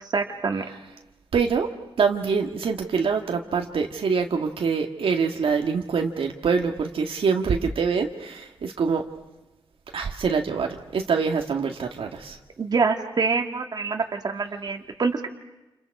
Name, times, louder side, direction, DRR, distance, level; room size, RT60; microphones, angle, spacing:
voice 1, 0.1-0.7 12.6-15.3, right 4 dB, 45° right, 3 dB, 2.3 m, -25 dB
voice 2, 1.3-1.7 2.0-9.0 9.9-12.4, right 5 dB, 80° right, 2 dB, 1.9 m, -25 dB
29.5 x 29.0 x 4.8 m, 1.0 s
wide cardioid pair, 120°, 9 cm